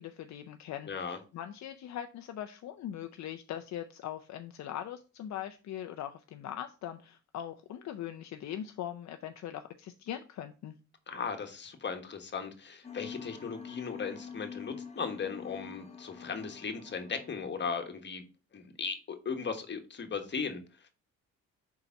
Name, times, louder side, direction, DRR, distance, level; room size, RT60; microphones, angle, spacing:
voice 1, 0.0-10.8, left 10 dB, 65° left, 7 dB, 0.6 m, -41 dB
voice 2, 0.9-1.2 11.1-18.2 18.5-20.6, left 5 dB, 35° left, 6 dB, 1.3 m, -37 dB
sound 1, 12.8-18.0, left 7 dB, 20° left, 1.0 m, -46 dB
4.8 x 4.0 x 5.7 m, 0.34 s
cardioid pair, 90°, 30 cm